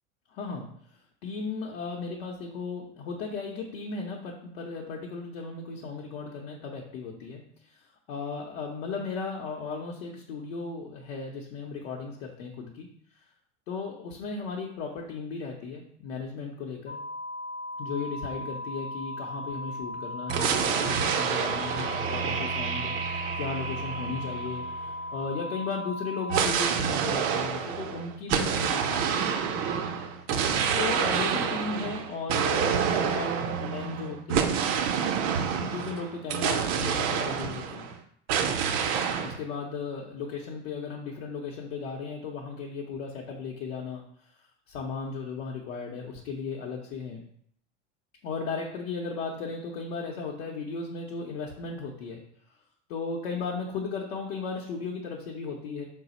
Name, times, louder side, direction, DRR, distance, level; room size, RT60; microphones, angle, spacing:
voice 1, 0.3-0.7 1.2-7.8 8.1-12.9 13.7-17.0 17.8-22.9 23.4-24.6 25.1-29.8 30.8-34.6 35.5-37.9 39.2-44.0 44.7-47.2 48.2-52.2 52.9-55.8, left 4 dB, 75° left, -2 dB, 0.7 m, -36 dB
sound 1, 16.9-26.5, left 1 dB, 35° left, 0.5 m, -37 dB
sound 2, 20.3-25.0 26.3-37.9 38.3-39.4, right 7 dB, 55° right, 0.5 m, -28 dB
4.0 x 2.0 x 4.0 m, 0.64 s
hypercardioid pair, 90°, 35 cm